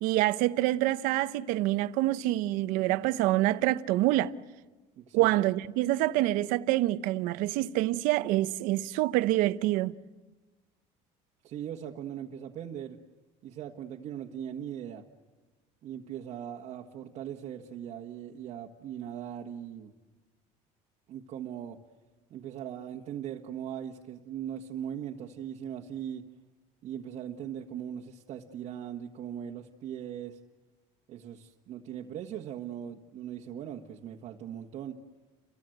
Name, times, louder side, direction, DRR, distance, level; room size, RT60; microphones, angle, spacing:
voice 1, 0.0-4.3 5.1-9.9, right 16 dB, 75° right, 0.9 m, -26 dB
voice 2, 5.0-5.3 11.4-13.0 13.4-15.0 15.8-19.9 21.1-21.8 22.3-26.2 26.8-30.4 31.1-35.0, right 9 dB, 50° right, 1.6 m, -39 dB
29.5 x 23.5 x 8.0 m
cardioid pair, 150°, 14 cm